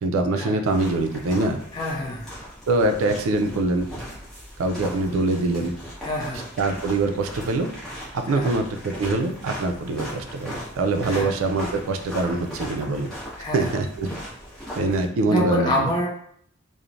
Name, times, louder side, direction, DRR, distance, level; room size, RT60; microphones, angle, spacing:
voice 1, 0.0-1.6 2.7-3.9 4.6-5.7 6.6-7.7 8.2-13.1 13.5-14.1 14.8-15.9, right 2 dB, 85° right, 6 dB, 0.4 m, -24 dB
sound 1, 0.6-15.0, equal, 5° left, 0.9 m, -38 dB
voice 2, 1.7-2.3 6.0-6.5 8.3-8.6 11.1-11.3 13.4-13.7 15.3-16.1, left 1 dB, 20° left, -3 dB, 0.5 m, -26 dB
3.0 x 2.0 x 2.5 m, 0.65 s
head